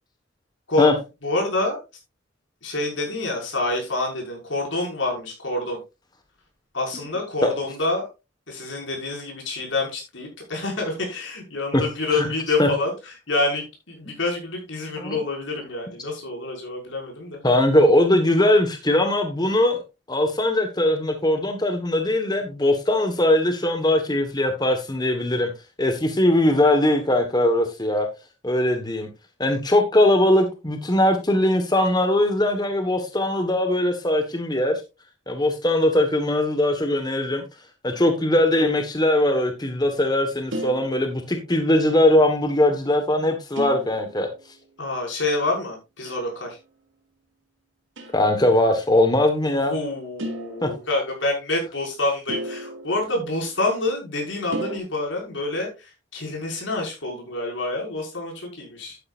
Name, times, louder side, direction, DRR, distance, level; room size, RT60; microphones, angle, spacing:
voice 1, 1.2-1.8 2.6-5.8 6.7-8.1 8.5-17.4 44.8-46.6 49.5-59.0, left 2 dB, 80° left, 0 dB, 5.8 m, -27 dB
voice 2, 17.4-19.8 20.1-25.5 25.8-28.1 28.4-29.1 29.4-34.8 35.3-37.4 37.8-44.3 48.1-49.7 50.6-50.7, left 1 dB, 20° left, 6 dB, 1.4 m, -20 dB
sound 1, 40.5-41.8 43.6-44.7 46.0-46.5 48.0-48.4 50.2-51.3 52.3-53.9 54.5-54.8, equal, 80° right, 2.7 m, -35 dB
11.5 x 9.8 x 2.5 m, 0.27 s
head